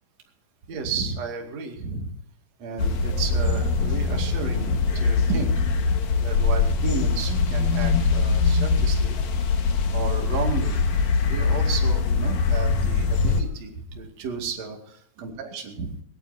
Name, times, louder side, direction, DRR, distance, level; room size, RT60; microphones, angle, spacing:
voice 1, 0.7-2.1 2.6-5.7 6.2-9.2 9.9-10.8 11.2-15.9, right 4 dB, 50° right, 2 dB, 3.3 m, -32 dB
sound 1, 2.8-13.4, left 4 dB, 60° left, 2.7 m, -22 dB
21.5 x 18.5 x 2.8 m, 0.67 s
omnidirectional pair, 4.2 m